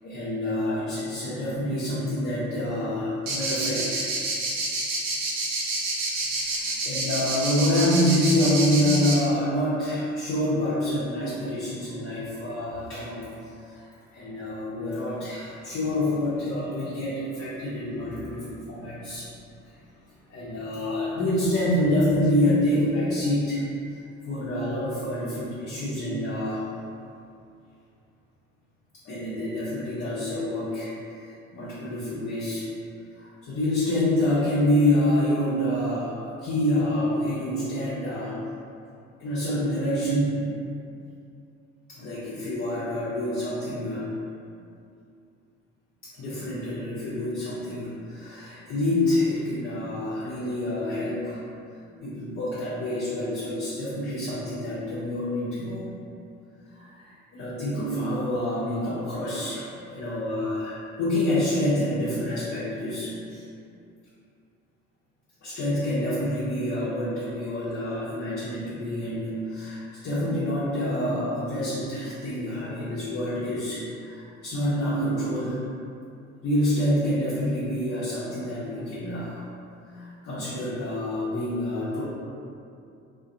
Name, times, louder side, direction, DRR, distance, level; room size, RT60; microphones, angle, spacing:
voice 1, 0.0-4.1 6.0-6.1 6.5-19.3 19.7-19.8 20.3-23.6 24.3-26.7 29.0-30.9 31.2-32.7 33.1-38.4 39.2-40.4 41.9-44.2 46.0-51.4 52.0-55.9 56.7-63.4 65.4-75.6 76.4-79.5 79.9-82.1, left 1 dB, 35° left, -9 dB, 0.6 m, -27 dB
sound 1, 3.3-9.2, right 3 dB, 70° right, 0.6 m, -28 dB
2.4 x 2.2 x 2.6 m, 2.5 s
figure-of-eight pair, 55°, 41 cm